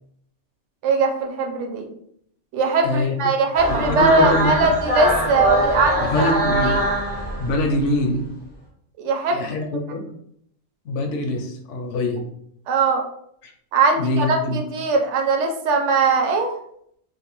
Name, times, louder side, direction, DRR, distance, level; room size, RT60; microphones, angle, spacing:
voice 1, 0.8-1.9 2.5-6.3 6.7-6.8 9.0-9.4 12.7-13.0 13.7-16.5, right 3 dB, 70° right, 4 dB, 0.8 m, -20 dB
voice 2, 2.8-3.3 3.7-4.7 6.0-6.7 7.4-8.3 9.3-10.1 10.8-12.2 13.4-13.5 14.0-14.6, left 2 dB, 70° left, 4 dB, 0.8 m, -24 dB
sound 1, 3.5-7.9, right 1 dB, 15° left, 0.3 m, -22 dB
2.6 x 2.2 x 2.9 m, 0.69 s
omnidirectional pair, 1.4 m